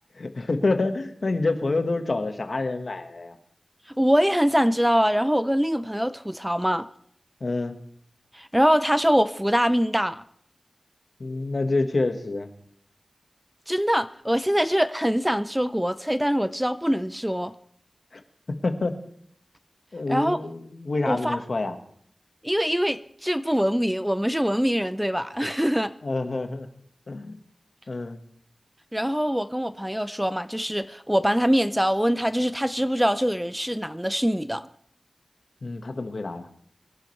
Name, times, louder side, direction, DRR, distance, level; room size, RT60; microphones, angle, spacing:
voice 1, 0.1-3.4 7.4-7.8 11.2-12.5 18.1-18.2 18.5-18.9 19.9-21.7 26.0-26.7 27.1-27.4 27.9-28.2 35.6-36.5, left 3 dB, 65° left, 6 dB, 1.5 m, -27 dB
voice 2, 4.0-6.9 8.3-10.2 13.7-17.5 20.1-20.4 21.1-21.4 22.4-25.9 28.9-34.6, equal, 5° right, 12 dB, 0.5 m, -23 dB
24.5 x 11.5 x 3.3 m, 0.64 s
wide cardioid pair, 80°, 0 cm